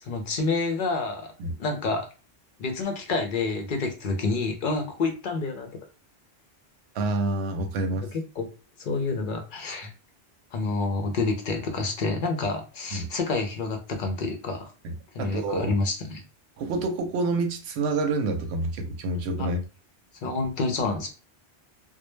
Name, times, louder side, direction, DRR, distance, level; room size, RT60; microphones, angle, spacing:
voice 1, 0.0-1.3 1.6-2.1 2.6-5.8 8.1-8.5 8.8-9.9 10.5-14.7 15.1-16.2 19.4-19.5 20.2-21.1, left 3 dB, 60° left, 0.6 m, -28 dB
voice 2, 6.9-8.1 12.9-13.1 14.8-15.7 16.6-19.6, right 2 dB, 85° right, 0.8 m, -28 dB
2.1 x 2.0 x 3.0 m
omnidirectional pair, 1.1 m